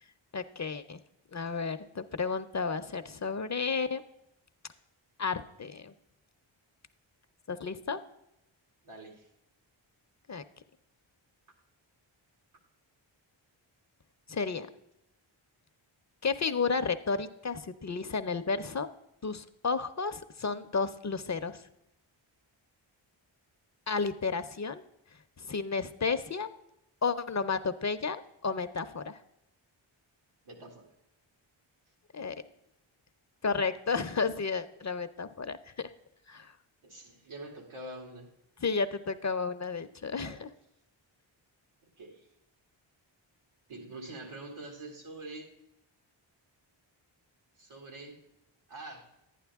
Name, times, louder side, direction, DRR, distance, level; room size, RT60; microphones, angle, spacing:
voice 1, 0.3-1.0 1.3-4.0 5.2-5.9 7.5-8.0 10.3-10.4 14.3-14.7 16.2-18.9 19.2-21.6 23.9-24.8 25.4-26.5 27.0-29.2 32.1-32.4 33.4-35.9 36.3-36.5 38.6-40.5, left 5 dB, 35° left, 11 dB, 0.6 m, -32 dB
voice 2, 8.8-9.3 30.4-30.9 36.8-38.3 40.2-40.4 42.0-42.2 43.7-45.5 47.6-48.2 48.7-49.1, right 2 dB, 90° right, 2 dB, 2.5 m, -45 dB
11.0 x 10.0 x 3.5 m, 0.83 s
wide cardioid pair, 80°, 48 cm